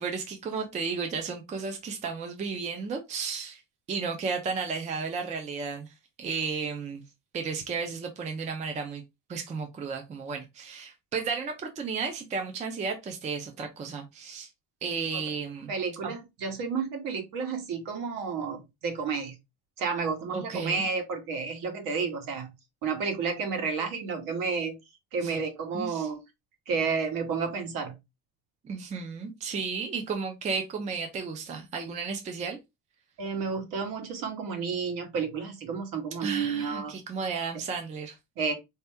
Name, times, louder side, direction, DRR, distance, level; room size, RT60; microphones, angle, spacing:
voice 1, 0.0-3.6 3.9-5.9 6.2-7.0 7.3-9.0 9.3-14.5 14.8-15.7 16.0-16.1 20.3-20.8 25.2-25.4 25.7-26.1 28.6-32.6 36.2-38.2, right 5 dB, 20° right, 0.5 m, -33 dB
voice 2, 15.7-19.4 19.8-22.5 22.8-24.8 25.1-26.2 26.7-28.0 33.2-36.9 38.4-38.6, right 5 dB, 60° right, 1.3 m, -31 dB
4.3 x 2.9 x 3.4 m
cardioid pair, 175°, 38 cm